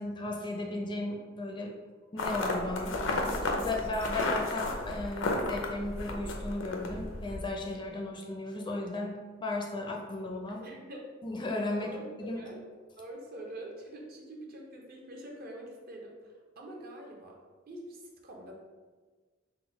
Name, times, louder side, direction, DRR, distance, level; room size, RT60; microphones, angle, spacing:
voice 1, 0.0-1.7 2.1-3.0 3.6-10.6 11.2-11.9 12.2-12.4, left 2 dB, 25° left, 0 dB, 0.5 m, -35 dB
sound 1, 2.2-7.5, left 2 dB, 70° left, 0.6 m, -33 dB
voice 2, 3.6-4.1 10.2-10.3 10.6-11.1 11.7-12.6 13.0-17.4 17.7-18.5, right 1 dB, 50° right, 0 dB, 0.7 m, -45 dB
3.8 x 2.2 x 4.4 m, 1.4 s
head